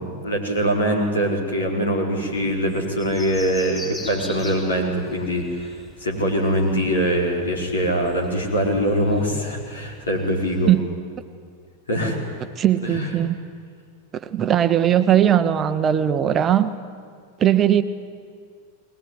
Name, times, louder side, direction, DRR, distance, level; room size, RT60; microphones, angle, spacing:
voice 1, 0.0-10.7 11.9-12.2 12.8-13.1, equal, 70° left, 0 dB, 4.6 m, -23 dB
sound 1, 2.3-10.7, left 2 dB, 10° left, 5.9 m, -43 dB
voice 2, 12.6-13.4 14.1-16.7 17.4-17.8, right 10 dB, 25° right, 11 dB, 0.9 m, -19 dB
21.5 x 20.0 x 9.8 m, 2.1 s
figure-of-eight pair, 90°, 0 cm